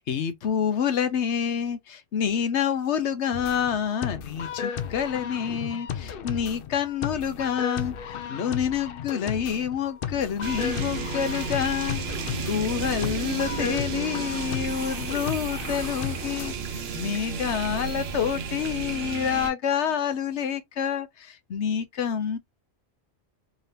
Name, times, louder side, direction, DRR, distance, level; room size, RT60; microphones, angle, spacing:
voice 1, 0.0-7.9 8.3-12.0 12.5-22.4, left 8 dB, 90° left, 1.1 m, -28 dB
sound 1, 3.3-16.5, left 8 dB, 60° left, 0.7 m, -34 dB
sound 2, 10.4-19.5, right 6 dB, 70° right, 1.0 m, -33 dB
3.8 x 2.8 x 3.2 m
omnidirectional pair, 1.1 m